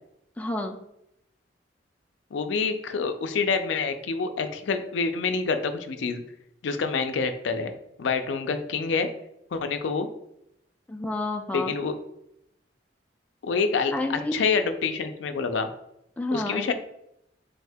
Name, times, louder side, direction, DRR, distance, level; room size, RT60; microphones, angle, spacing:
voice 1, 0.4-0.8 10.9-11.7 13.9-14.5 16.2-16.7, left 2 dB, 10° left, 4 dB, 0.3 m, -29 dB
voice 2, 2.3-6.2 6.6-7.7 8.0-9.1 9.5-10.1 11.5-12.0 13.4-15.7 16.3-16.7, left 5 dB, 80° left, 8 dB, 0.4 m, -27 dB
4.1 x 2.7 x 3.4 m, 0.81 s
head